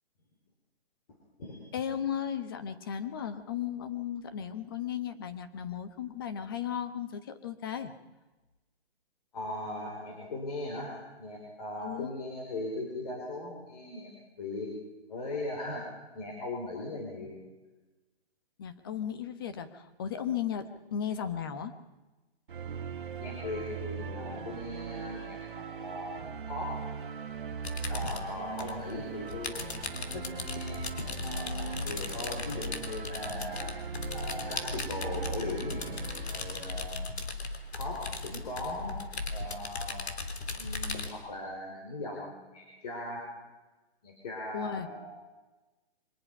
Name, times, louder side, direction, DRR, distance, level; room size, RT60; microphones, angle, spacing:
voice 1, 1.7-7.9 11.8-12.1 18.6-21.7 44.5-44.9, left 8 dB, 20° left, 10 dB, 1.1 m, -35 dB
voice 2, 9.3-14.1 14.4-14.7 15.1-15.9 16.1-17.4 23.2-26.2 26.5-26.8 27.9-33.7 34.1-36.0 36.3-37.1 37.7-39.0 39.3-40.0 40.6-43.3 44.0-45.1, left 2 dB, 40° left, -2 dB, 5.2 m, -39 dB
sound 1, 22.5-37.0, right 6 dB, 50° right, 2.2 m, -40 dB
sound 2, 27.6-41.1, left 3 dB, 85° left, 3.6 m, -37 dB
24.5 x 19.5 x 5.6 m, 1.1 s
hypercardioid pair, 175°, 32 cm